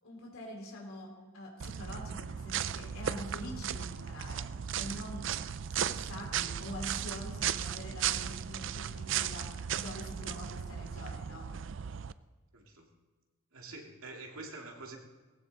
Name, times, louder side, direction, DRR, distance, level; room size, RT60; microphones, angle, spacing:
voice 1, 0.0-4.5 4.8-5.4 5.7-11.5, left 1 dB, 80° left, -1 dB, 3.4 m, -45 dB
sound 1, 1.6-12.1, right 9 dB, 60° right, 0.4 m, -36 dB
voice 2, 12.5-12.9 13.5-15.0, right 3 dB, 85° right, 1 dB, 2.3 m, -46 dB
19.0 x 15.5 x 4.0 m, 1.3 s
head